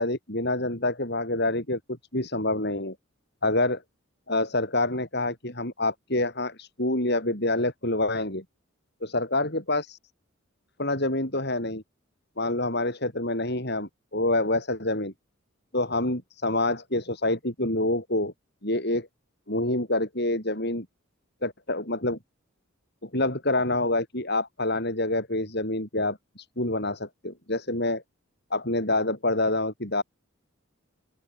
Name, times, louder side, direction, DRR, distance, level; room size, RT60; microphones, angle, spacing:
voice 1, 0.0-3.0 3.4-3.8 4.3-8.4 9.0-10.0 10.8-11.8 12.4-15.1 15.7-18.3 18.6-19.1 19.5-20.9 21.4-22.2 23.0-28.0 28.5-30.0, left 2 dB, 50° left, 7.1 m, -27 dB
open air
head